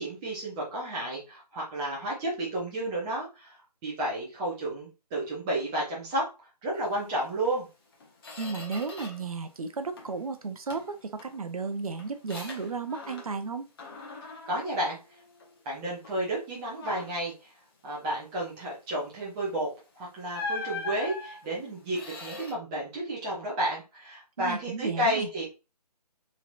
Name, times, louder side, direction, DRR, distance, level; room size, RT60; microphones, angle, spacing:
voice 1, 0.0-3.5 3.8-6.3 6.6-7.7 14.5-15.0 15.7-17.3 17.8-19.7 20.0-25.4, right 1 dB, 10° right, -5 dB, 0.5 m, -31 dB
Squeak, 7.4-7.6 7.9-9.4 9.7-10.3 10.7-13.5 13.8-15.6 16.0-16.3 16.7-17.3 19.4-19.6 20.3-22.5, left 4 dB, 35° left, 0.7 m, -41 dB
voice 2, 8.4-13.7 24.4-25.3, right 4 dB, 60° right, 8 dB, 0.5 m, -34 dB
3.1 x 2.8 x 2.3 m, 0.29 s
figure-of-eight pair, 145°, 21 cm